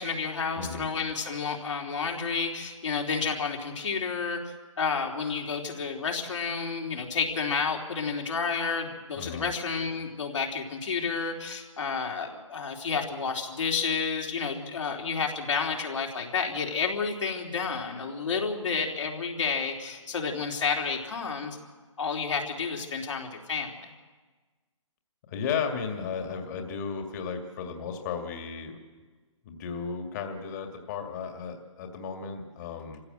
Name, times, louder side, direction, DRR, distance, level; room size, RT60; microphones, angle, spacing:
voice 1, 0.0-4.4 4.8-21.6 22.0-23.7, left 5 dB, 65° left, 0 dB, 3.6 m, -30 dB
voice 2, 0.6-0.9 9.2-9.5 25.3-28.8 29.4-33.0, left 6 dB, 35° left, 4 dB, 2.3 m, -34 dB
25.5 x 16.0 x 7.9 m, 1.4 s
hypercardioid pair, 150°, 17 cm